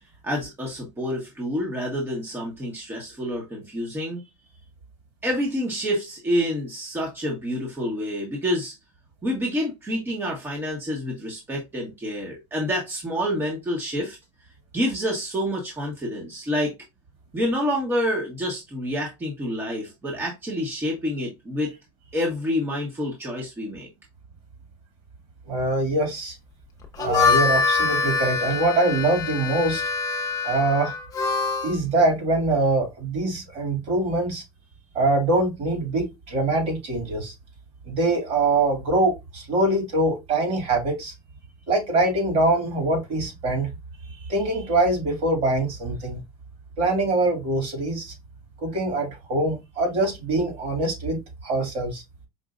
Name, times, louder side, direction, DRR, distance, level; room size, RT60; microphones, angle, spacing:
voice 1, 0.2-4.2 5.2-8.7 9.2-14.2 14.7-16.7 17.3-21.7 22.1-23.9, equal, 15° right, 1.2 m, -28 dB
voice 2, 25.5-26.4 27.0-29.8 30.4-31.0 31.6-34.4 34.9-37.3 37.9-41.1 41.7-43.7 44.3-46.2 46.8-48.1 48.6-52.0, right 2 dB, 50° right, 2.2 m, -23 dB
Harmonica, 26.8-31.8, left 5 dB, 25° left, 1.0 m, -24 dB
5.2 x 2.7 x 2.4 m
supercardioid pair, 120°, 14 cm